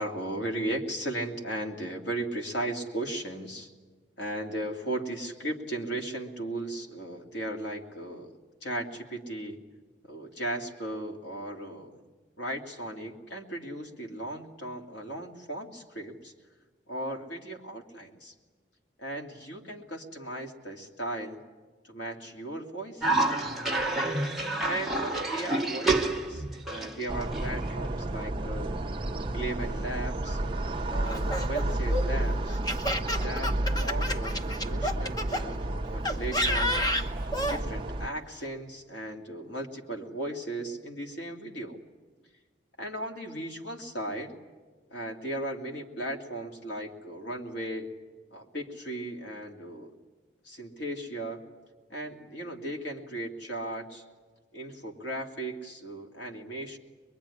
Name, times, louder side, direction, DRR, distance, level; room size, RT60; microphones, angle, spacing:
voice 1, 0.0-3.7 4.2-8.3 8.6-9.6 10.1-12.0 12.4-16.3 16.9-18.3 19.0-21.4 21.8-23.1 24.6-28.8 29.3-30.4 30.9-32.6 33.2-33.5 33.8-36.8 37.3-41.8 42.8-44.4 44.9-47.9 48.3-49.9 50.4-51.4 51.9-54.0 54.5-56.8, right 1 dB, 80° left, 2 dB, 2.6 m, -36 dB
Cough, 23.0-28.1, right 2 dB, ahead, 1.1 m, -29 dB
sound 1, 27.1-38.1, right 1 dB, 30° right, 0.7 m, -31 dB
Laughter, 31.0-35.4 36.1-37.6, equal, 20° left, 1.1 m, -30 dB
23.0 x 22.5 x 9.9 m, 1.4 s
head